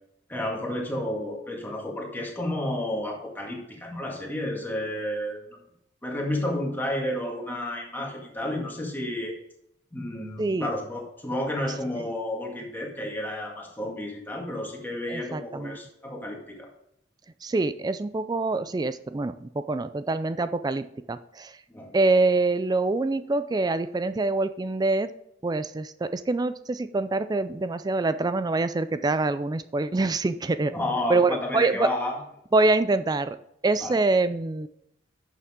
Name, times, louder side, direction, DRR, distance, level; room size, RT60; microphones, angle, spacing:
voice 1, 0.3-5.6 6.0-9.4 9.9-16.7 21.7-22.0 30.7-32.2 33.8-33.9, left 1 dB, 10° left, -1 dB, 2.0 m, -31 dB
voice 2, 10.4-10.7 15.1-15.8 17.4-21.6 21.9-25.1 25.4-30.7 31.1-31.9 32.5-33.4 33.6-34.7, right 3 dB, 20° right, 12 dB, 0.3 m, -25 dB
10.5 x 7.0 x 3.7 m, 0.75 s
head